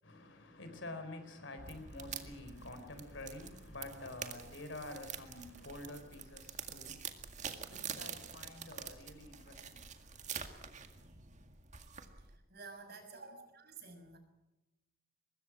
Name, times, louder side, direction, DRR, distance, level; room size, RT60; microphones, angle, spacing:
voice 1, 0.0-11.1, left 2 dB, 65° left, 4.2 m, -49 dB
sound 1, 1.6-12.4, right 7 dB, 35° right, 2.0 m, -47 dB
voice 2, 12.5-14.2, right 4 dB, 50° right, 6.3 m, -51 dB
24.0 x 21.5 x 6.2 m
head